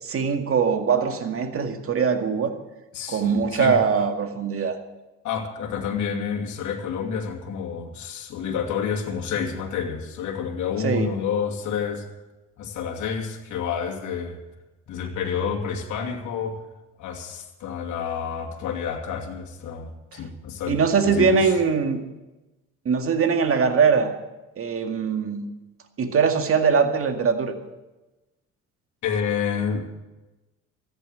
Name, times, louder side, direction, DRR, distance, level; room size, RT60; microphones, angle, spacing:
voice 1, 0.0-2.5 3.1-4.8 10.8-11.1 20.1-20.2 20.7-22.0 22.9-24.1 24.6-25.5 26.0-27.5, right 6 dB, 45° right, 6 dB, 2.1 m, -22 dB
voice 2, 2.9-3.8 5.2-12.0 12.6-14.4 14.9-16.6 17.0-21.5 29.0-29.9, left 7 dB, 65° left, 1 dB, 2.7 m, -29 dB
14.5 x 10.0 x 7.8 m, 1.1 s
supercardioid pair, 80°, 31 cm